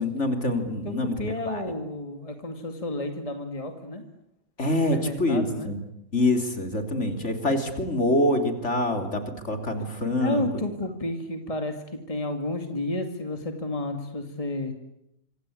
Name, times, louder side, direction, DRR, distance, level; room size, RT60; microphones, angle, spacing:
voice 1, 0.0-1.7 4.6-5.8 6.1-10.4, left 1 dB, 55° left, 6 dB, 3.6 m, -25 dB
voice 2, 0.8-4.0 4.9-5.7 6.8-7.1 10.2-14.7, left 1 dB, 25° left, 5 dB, 2.3 m, -31 dB
26.5 x 25.5 x 8.7 m, 0.81 s
omnidirectional pair, 1.4 m